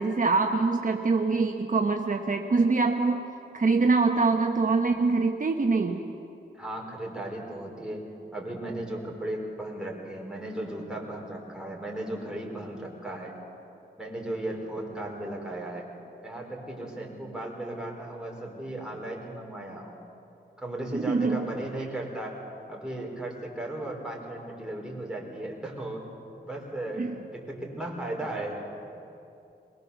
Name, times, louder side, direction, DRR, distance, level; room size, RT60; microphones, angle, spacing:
voice 1, 0.0-3.3 3.5-6.0 20.9-21.5 27.0-27.2, right 4 dB, 45° right, 3 dB, 1.1 m, -24 dB
voice 2, 6.5-8.0 8.3-13.3 14.0-15.9 16.2-20.0 20.6-22.4 22.7-26.0 26.4-27.1 27.3-28.6, right 1 dB, 5° right, -2 dB, 4.4 m, -36 dB
22.0 x 20.5 x 7.0 m, 2.7 s
wide cardioid pair, 100°, 19 cm